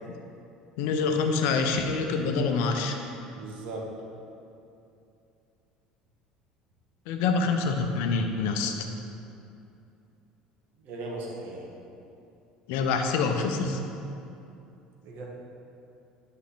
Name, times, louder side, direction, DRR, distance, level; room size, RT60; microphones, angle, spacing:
voice 1, 0.8-3.0 7.1-8.7 12.7-13.8, left 4 dB, 60° left, 5 dB, 0.8 m, -26 dB
voice 2, 3.3-3.9 10.8-11.7 15.0-15.3, right 2 dB, 50° right, -2 dB, 1.8 m, -38 dB
11.0 x 5.5 x 4.0 m, 2.7 s
figure-of-eight pair, 65°, 4 cm